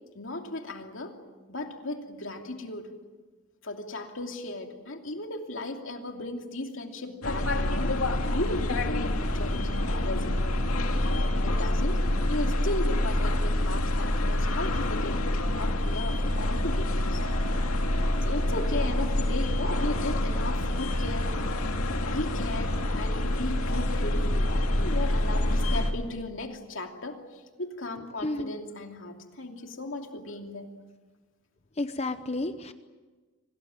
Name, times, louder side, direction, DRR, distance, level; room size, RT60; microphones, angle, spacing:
voice 1, 0.1-1.1 1.5-2.9 3.6-7.9 8.3-10.6 11.3-12.0 12.3-15.2 15.6-17.2 18.2-21.4 22.0-24.5 24.8-30.7, left 2 dB, 60° left, 3 dB, 2.8 m, -36 dB
sound 1, 7.2-25.9, left 1 dB, 85° left, 2.3 m, -27 dB
voice 2, 28.2-28.5 31.8-32.7, left 2 dB, 30° left, 10 dB, 0.8 m, -31 dB
26.0 x 19.0 x 9.0 m, 1.3 s
head